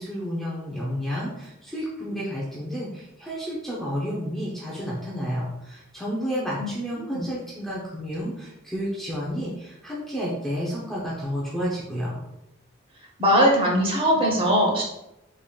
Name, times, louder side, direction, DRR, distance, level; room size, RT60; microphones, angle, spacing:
voice 1, 0.0-12.2, equal, ahead, -7 dB, 0.6 m, -31 dB
voice 2, 13.2-14.8, equal, 25° right, -2 dB, 0.8 m, -20 dB
3.7 x 3.6 x 2.3 m, 0.87 s
head